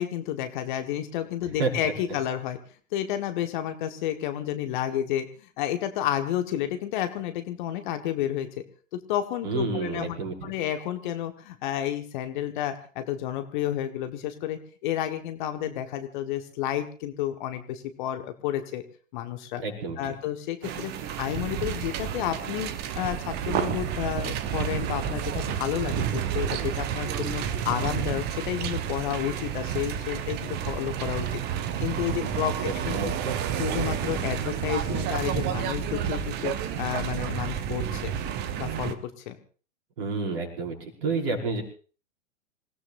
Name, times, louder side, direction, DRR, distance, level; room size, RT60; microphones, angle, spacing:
voice 1, 0.0-2.6 2.9-5.2 5.6-8.5 8.9-18.8 19.1-19.6 20.0-20.9 21.2-31.4 31.8-33.1 33.6-38.1 38.6-39.4, left 11 dB, 40° left, 8 dB, 1.4 m, -31 dB
voice 2, 9.4-10.3 19.6-20.1 32.2-33.4 40.0-41.6, right 3 dB, 45° right, 1 dB, 5.5 m, -30 dB
sound 1, 20.6-38.9, right 9 dB, 25° right, 1.1 m, -30 dB
27.0 x 17.0 x 2.6 m, 0.40 s
figure-of-eight pair, 105°, 38 cm